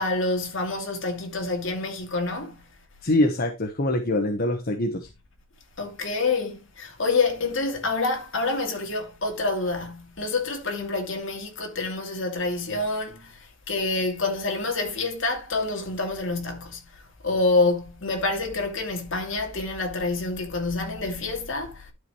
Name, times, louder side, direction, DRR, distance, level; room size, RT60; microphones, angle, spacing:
voice 1, 0.0-2.6 5.8-13.4 13.7-16.9 17.2-21.9, left 3 dB, 70° left, 2.7 m, -27 dB
voice 2, 3.0-5.1, left 1 dB, 50° left, 1.2 m, -24 dB
12.0 x 5.4 x 3.2 m
head